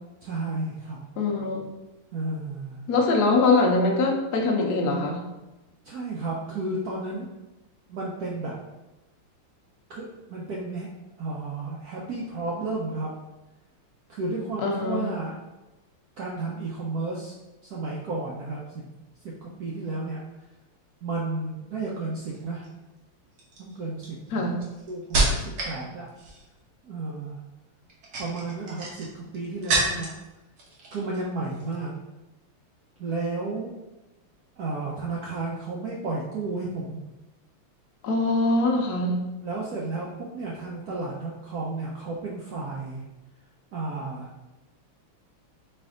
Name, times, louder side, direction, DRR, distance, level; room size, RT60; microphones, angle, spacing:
voice 1, 0.2-1.0 2.1-2.8 5.8-7.3 7.9-8.5 9.9-10.9 11.2-13.1 14.1-15.4 16.2-17.4 17.6-18.9 19.2-20.2 21.0-22.6 23.6-24.4 24.9-26.1 26.8-27.4 28.2-30.1 30.9-31.9 33.0-33.8 34.6-37.0 39.4-43.0 43.7-44.3, right 3 dB, 80° right, -4 dB, 0.8 m, -32 dB
voice 2, 1.2-1.7 2.9-5.2 14.6-15.0 24.3-24.5 38.0-39.2, left 3 dB, 65° left, 1 dB, 1.0 m, -23 dB
sound 1, 22.3-22.7 23.4-25.8 26.1-26.6 27.8-30.2 30.6-31.2 31.5-31.7, right 2 dB, 55° right, 1.5 m, -29 dB
4.3 x 3.4 x 3.7 m, 1.0 s
omnidirectional pair, 2.4 m